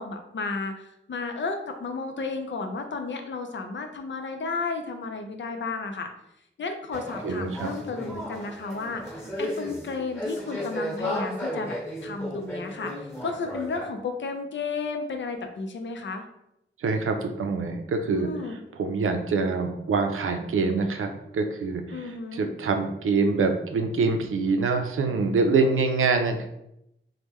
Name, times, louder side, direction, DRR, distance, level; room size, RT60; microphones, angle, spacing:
voice 1, 0.0-6.1 6.6-16.2 18.1-18.6 21.9-22.5, left 4 dB, 65° left, 5 dB, 0.5 m, -33 dB
sound 1, 6.9-13.9, left 1 dB, 10° left, 1.0 m, -34 dB
voice 2, 7.2-7.7 16.8-18.3 18.8-22.0 22.3-26.5, right 4 dB, 80° right, 5 dB, 0.4 m, -25 dB
3.0 x 2.1 x 3.4 m, 0.81 s
wide cardioid pair, 115°, 21 cm